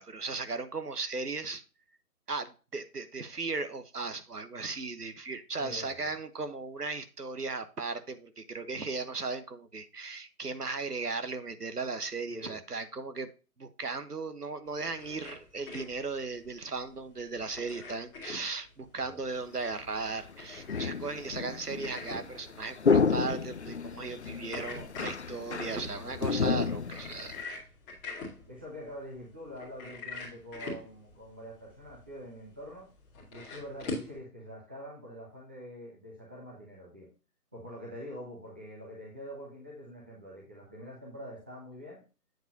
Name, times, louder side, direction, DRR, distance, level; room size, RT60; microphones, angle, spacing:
voice 1, 0.0-1.6 2.3-13.3 13.6-27.4, right 4 dB, 80° right, 10 dB, 1.3 m, -37 dB
voice 2, 5.6-6.1 12.3-12.6 19.1-19.2 24.5-24.7 28.5-32.9 33.3-37.1 37.5-42.0, equal, 5° right, -4 dB, 0.7 m, -45 dB
sound 1, 14.7-34.2, left 3 dB, 10° left, 1.8 m, -45 dB
sound 2, 19.6-19.7 20.3-27.4, left 5 dB, 50° left, 0.5 m, -31 dB
8.0 x 7.0 x 2.7 m, 0.32 s
figure-of-eight pair, 145°, 46 cm